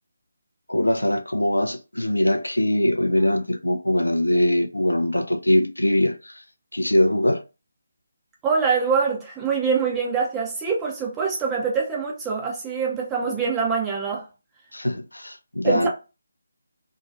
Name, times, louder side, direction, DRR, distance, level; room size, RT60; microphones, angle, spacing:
voice 1, 0.7-6.4 6.7-7.4 14.7-15.9, left 1 dB, 80° left, 0.3 m, -22 dB
voice 2, 8.4-14.2 15.6-15.9, right 5 dB, 10° right, 0.5 m, -24 dB
2.5 x 2.3 x 2.4 m
figure-of-eight pair, 150°, 0 cm